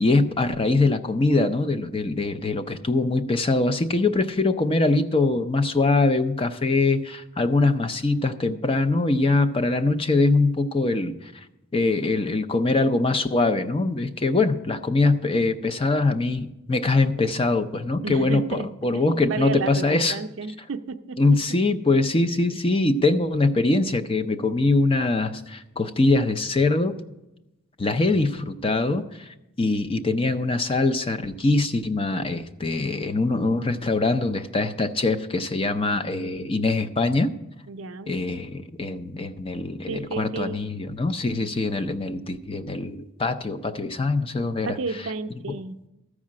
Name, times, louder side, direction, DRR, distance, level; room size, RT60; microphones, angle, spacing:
voice 1, 0.0-11.3 11.7-18.4 18.8-20.2 21.2-27.0 27.8-37.3 38.1-44.8, left 2 dB, 25° left, 9 dB, 0.5 m, -23 dB
voice 2, 18.0-18.7 18.9-21.4 22.5-22.6 37.7-38.2 39.9-40.7 44.7-45.8, right 3 dB, 65° right, 9 dB, 0.5 m, -32 dB
13.5 x 4.9 x 7.4 m, 0.96 s
head